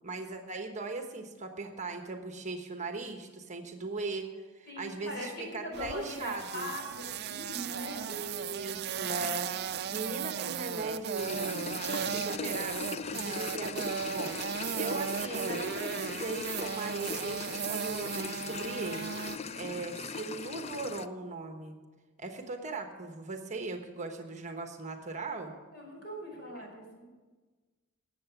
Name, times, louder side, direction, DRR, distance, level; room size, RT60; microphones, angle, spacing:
voice 1, 0.0-6.7 8.1-9.5 9.9-11.7 12.1-12.8 13.1-21.8 22.2-25.5 26.6-26.7, right 3 dB, 35° right, 5 dB, 1.2 m, -39 dB
voice 2, 4.7-8.1 9.0-9.3 19.5-20.0 25.4-27.0, equal, 50° left, 0 dB, 4.8 m, -41 dB
sound 1, 5.7-19.4, right 8 dB, 50° right, 0.5 m, -36 dB
sound 2, 11.2-21.1, left 5 dB, 30° left, 0.4 m, -40 dB
18.5 x 8.0 x 6.0 m, 1.3 s
head